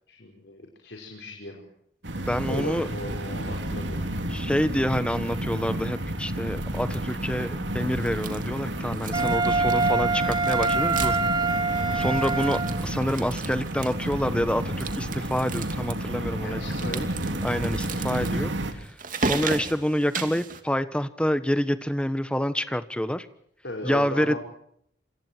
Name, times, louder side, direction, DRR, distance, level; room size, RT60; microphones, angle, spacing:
voice 1, 0.1-1.6 2.5-4.2 16.4-17.2 23.6-24.4, left 1 dB, 70° left, 2 dB, 5.4 m, -36 dB
sound 1, 2.0-18.7, right 1 dB, 85° right, 3.4 m, -31 dB
voice 2, 2.3-2.9 4.3-11.2 11.9-16.6 16.8-17.1 17.4-18.9 19.2-23.3 23.8-24.4, equal, 5° left, 12 dB, 1.3 m, -27 dB
sound 2, 8.0-8.6 8.9-10.0 10.2-11.4 11.6-11.7 12.0-14.2 14.7-15.9 16.7-20.6, right 4 dB, 45° right, 2.7 m, -35 dB
Wind instrument woodwind instrument, 9.1-12.9, right 3 dB, 25° right, 1.4 m, -25 dB
28.0 x 27.0 x 4.7 m, 0.67 s
head